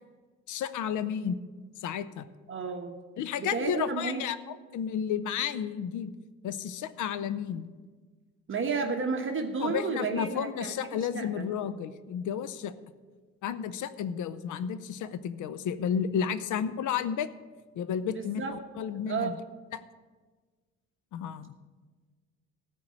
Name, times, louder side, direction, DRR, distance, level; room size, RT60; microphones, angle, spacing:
voice 1, 0.5-1.4 1.8-2.3 3.2-6.1 6.4-7.7 9.6-12.8 13.4-17.3 17.8-19.4 19.7-19.8 21.1-21.5, left 8 dB, 80° left, 14 dB, 0.7 m, -32 dB
voice 2, 2.5-3.0 3.4-4.2 8.5-10.7 11.1-11.5 18.1-18.5 19.1-19.3, right 4 dB, 40° right, 4 dB, 1.2 m, -32 dB
13.5 x 4.7 x 8.7 m, 1.4 s
cardioid pair, 90°, 30 cm